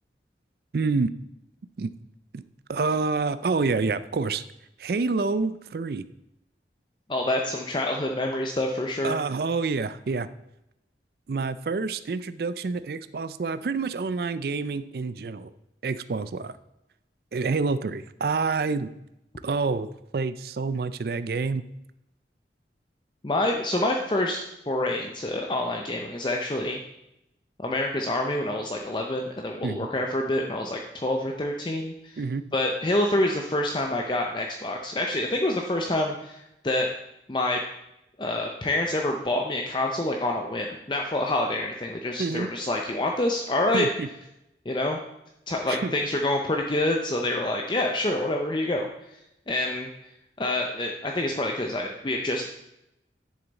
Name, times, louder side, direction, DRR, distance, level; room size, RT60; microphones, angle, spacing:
voice 1, 0.7-1.1 1.8-1.9 2.3-2.4 2.7-4.4 4.8-6.0 9.0-10.3 11.3-15.5 15.8-16.5 17.3-18.9 19.4-21.6 29.6-29.9 32.2-32.4 42.2-42.5 43.7-44.1 45.7-45.9, right 4 dB, 55° right, 14 dB, 0.4 m, -27 dB
voice 2, 7.1-9.1 23.2-26.8 27.6-32.2 32.5-36.9 37.3-37.6 38.2-43.9 44.7-45.0 45.5-48.9 49.5-49.9 50.4-52.5, left 1 dB, 25° left, 1 dB, 0.6 m, -27 dB
10.0 x 7.0 x 4.0 m, 0.86 s
head